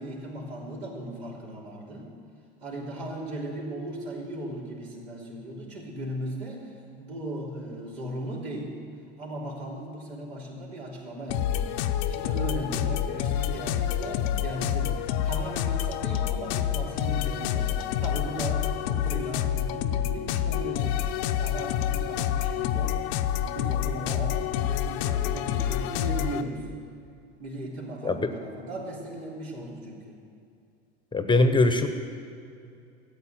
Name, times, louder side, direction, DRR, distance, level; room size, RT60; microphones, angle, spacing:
voice 1, 0.0-2.1 2.6-6.7 7.0-8.7 9.2-11.7 12.1-21.0 21.4-23.0 23.3-26.6 27.4-30.2, right 1 dB, 75° right, -3 dB, 3.3 m, -37 dB
sound 1, 11.3-26.4, left 10 dB, 60° left, 0.8 m, -28 dB
voice 2, 31.1-31.9, left 2 dB, 15° left, 8 dB, 0.9 m, -21 dB
14.0 x 8.2 x 9.0 m, 2.5 s
hypercardioid pair, 80°, 32 cm